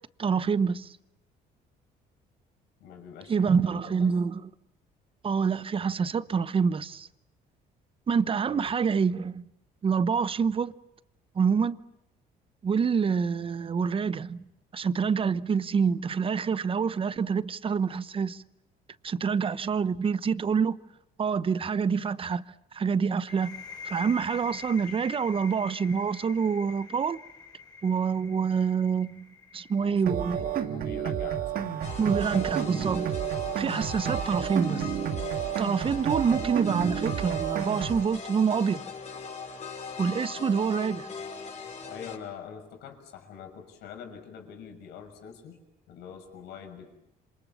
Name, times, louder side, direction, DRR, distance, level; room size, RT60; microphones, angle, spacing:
voice 1, 0.2-0.9 3.3-4.5 5.2-7.1 8.1-9.4 9.8-10.7 11.3-11.8 12.6-14.4 14.7-18.4 19.0-20.8 21.2-22.4 22.7-23.6 23.8-27.2 27.8-30.4 32.0-33.1 33.6-34.9 35.6-38.8 40.0-41.1, right 6 dB, 30° right, 1.0 m, -26 dB
voice 2, 2.8-4.1 8.5-8.6 29.8-32.7 33.4-33.6 41.9-45.6 45.9-46.9, left 7 dB, 85° left, 6.5 m, -45 dB
sound 1, 23.3-30.8, left 6 dB, 25° left, 4.8 m, -45 dB
sound 2, 30.1-38.1, right 9 dB, 60° right, 1.9 m, -31 dB
sound 3, 31.8-42.2, left 5 dB, 45° left, 5.7 m, -40 dB
27.5 x 27.0 x 7.3 m
cardioid pair, 110°, 17 cm